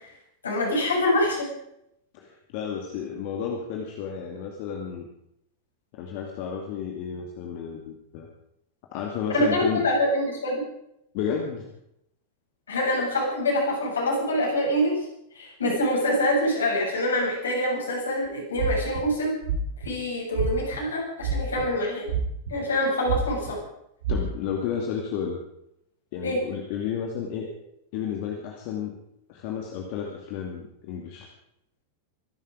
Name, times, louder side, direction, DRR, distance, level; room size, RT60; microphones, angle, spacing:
voice 1, 0.4-1.5 9.3-10.6 12.7-15.0 15.3-19.3 19.8-22.1 22.5-23.6 26.2-26.4, left 1 dB, 70° left, -3 dB, 7.6 m, -25 dB
voice 2, 2.1-5.1 5.9-8.3 8.9-9.8 11.1-11.7 24.1-25.4 26.1-27.5 27.9-28.9 29.3-31.3, left 7 dB, 45° left, 1 dB, 2.4 m, -32 dB
sound 1, 18.6-19.0 19.4-19.9 20.3-20.8 21.2-21.7 22.1-22.7 23.1-23.5 24.0-24.2, right 7 dB, 60° right, 3.7 m, -27 dB
25.0 x 11.5 x 5.0 m, 0.78 s
figure-of-eight pair, 90°, 0 cm